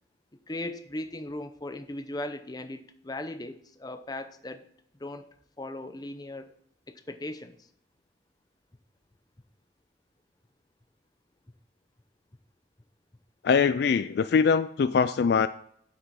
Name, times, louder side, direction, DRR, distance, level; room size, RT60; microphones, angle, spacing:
voice 1, 0.5-4.6 5.0-5.2 5.6-6.5 6.9-7.6, left 1 dB, 20° left, 8 dB, 0.7 m, -38 dB
voice 2, 13.4-15.5, left 5 dB, 55° left, 14 dB, 0.3 m, -22 dB
9.1 x 7.9 x 4.2 m, 0.67 s
head